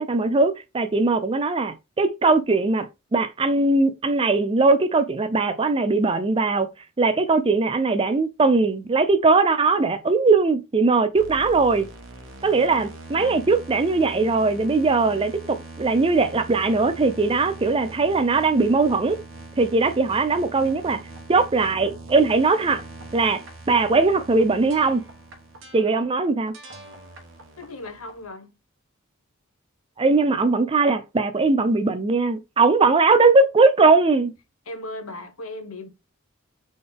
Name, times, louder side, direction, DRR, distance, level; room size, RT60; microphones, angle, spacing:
voice 1, 0.0-6.7 7.0-11.9 12.4-19.2 19.6-21.0 21.3-22.8 23.1-25.0 25.7-26.5 30.0-34.3, right 3 dB, 25° right, 0.4 m, -20 dB
sound 1, 11.1-28.3, right 2 dB, 65° right, 1.1 m, -42 dB
voice 2, 13.1-13.5 27.6-28.5 34.7-35.9, left 2 dB, 85° left, 1.0 m, -37 dB
3.9 x 3.8 x 3.4 m
head